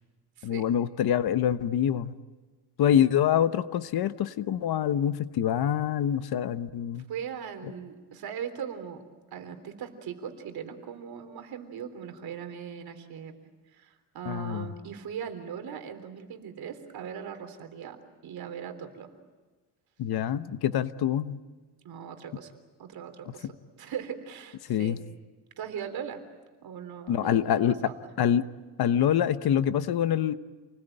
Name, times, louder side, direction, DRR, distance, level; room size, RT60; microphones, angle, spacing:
voice 1, 0.4-2.1 2.8-7.0 14.2-14.7 20.0-21.4 23.4-23.5 24.7-25.0 27.1-27.8 28.2-28.4 28.8-30.3, left 9 dB, 60° left, 12 dB, 1.2 m, -25 dB
voice 2, 7.1-9.0 9.3-13.3 13.7-18.0 18.2-19.1 21.8-22.5 22.8-23.5 23.8-25.0 25.6-26.2 26.6-28.0, right 8 dB, 60° right, 7 dB, 3.6 m, -39 dB
28.5 x 20.5 x 9.1 m, 1.3 s
cardioid pair, 135°, 42 cm